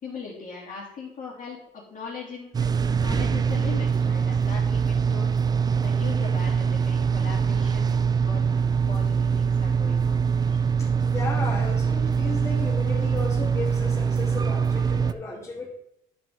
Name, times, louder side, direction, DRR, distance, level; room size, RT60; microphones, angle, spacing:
voice 1, 0.0-2.6 3.0-5.3 5.8-10.2, left 5 dB, 50° left, -8 dB, 2.9 m, -39 dB
sound 1, 2.5-15.1, right 6 dB, 25° right, 0.4 m, -23 dB
voice 2, 10.5-15.7, left 3 dB, 15° left, -4 dB, 3.0 m, -34 dB
10.5 x 5.5 x 3.8 m, 0.75 s
cardioid pair, 110°, 17 cm